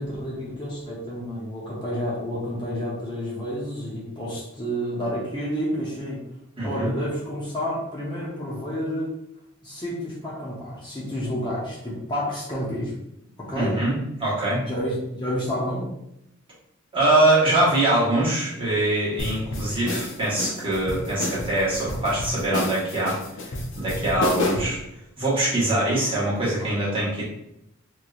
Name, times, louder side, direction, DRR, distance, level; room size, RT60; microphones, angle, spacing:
voice 1, 0.0-6.2 6.6-9.1 9.6-12.9 13.4-13.8 14.6-15.9 26.6-26.7, equal, 20° left, -6 dB, 0.7 m, -30 dB
voice 2, 6.6-6.9 13.5-14.6 16.9-23.2 23.7-24.8 25.2-27.2, right 1 dB, 25° right, -8 dB, 1.3 m, -23 dB
sound 1, 19.2-24.8, left 2 dB, 65° left, 0.6 m, -29 dB
3.1 x 2.8 x 2.4 m, 0.81 s
head